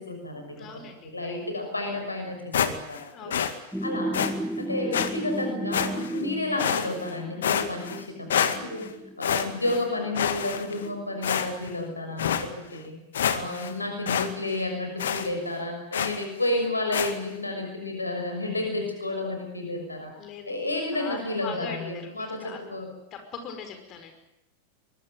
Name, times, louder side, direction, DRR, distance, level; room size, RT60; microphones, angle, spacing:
voice 1, 0.0-0.7 1.1-3.3 3.8-4.3 4.6-8.9 9.2-13.0 13.3-20.1 20.5-22.9, left 2 dB, 80° left, 4 dB, 6.3 m, -31 dB
voice 2, 0.6-1.3 3.1-3.5 20.2-20.5 20.9-22.6 23.1-24.1, left 6 dB, 35° left, 6 dB, 5.5 m, -41 dB
sound 1, 2.5-3.0 3.3-3.5 4.1-4.3 4.9-5.1 5.7-6.2 6.6-7.1 7.4-8.0 8.3-8.9 9.2-9.8 10.1-10.8 11.2-11.7 12.2-12.4 12.8-12.9 13.1-13.7 14.1-14.3 14.5-14.6 15.0-15.3 15.9-16.2 16.9-17.1, left 8 dB, 65° left, 2.1 m, -27 dB
sound 2, 3.7-11.2, right 1 dB, ahead, 1.7 m, -35 dB
24.0 x 22.0 x 9.3 m, 0.81 s
figure-of-eight pair, 90°, 0 cm